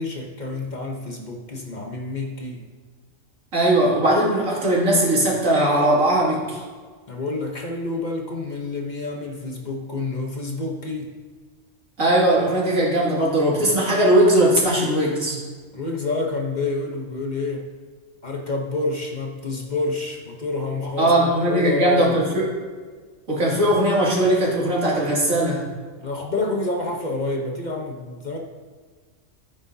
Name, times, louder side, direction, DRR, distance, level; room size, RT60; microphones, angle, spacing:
voice 1, 0.0-2.6 7.1-11.2 15.7-17.7 18.2-22.2 26.0-28.4, left 2 dB, 40° left, 1 dB, 1.0 m, -28 dB
voice 2, 3.5-6.6 12.0-15.4 21.0-22.5 23.3-25.6, right 1 dB, 85° right, -5 dB, 2.9 m, -19 dB
13.5 x 9.2 x 2.8 m, 1.5 s
omnidirectional pair, 1.3 m